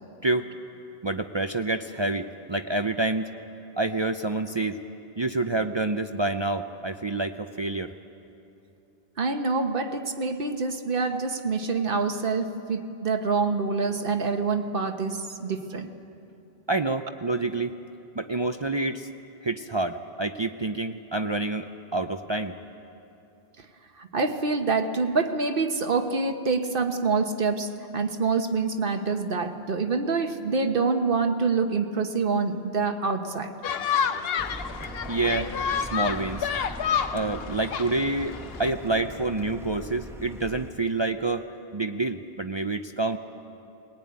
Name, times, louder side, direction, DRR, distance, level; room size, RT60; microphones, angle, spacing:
voice 1, 1.0-3.3 3.8-4.8 5.2-7.9 16.7-17.8 18.2-19.1 19.4-22.5 35.1-35.5 35.8-36.5 37.1-41.5 41.7-43.2, right 2 dB, 35° right, 6 dB, 0.5 m, -28 dB
voice 2, 9.2-15.9 24.0-33.6, right 4 dB, 60° right, 7 dB, 1.3 m, -26 dB
sound 1, 33.6-38.7, left 7 dB, 70° left, 0.9 m, -29 dB
Car, 34.4-40.7, equal, 5° right, 0.9 m, -41 dB
21.0 x 18.5 x 9.5 m, 2.8 s
omnidirectional pair, 1.0 m